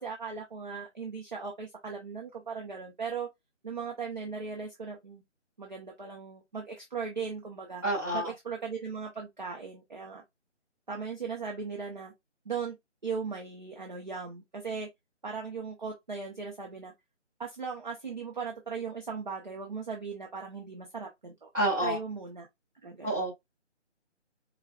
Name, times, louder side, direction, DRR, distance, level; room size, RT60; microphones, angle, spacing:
voice 1, 0.0-3.3 3.6-5.2 5.6-7.8 8.1-10.2 10.9-12.1 12.5-12.8 13.0-14.9 15.2-16.9 17.4-21.5 21.8-22.5 22.8-23.3, right 5 dB, 40° right, 0.8 m, -38 dB
voice 2, 7.8-8.3 21.5-22.0 23.0-23.3, right 1 dB, 20° right, 1.7 m, -28 dB
4.9 x 2.4 x 2.2 m
figure-of-eight pair, 175°, 36 cm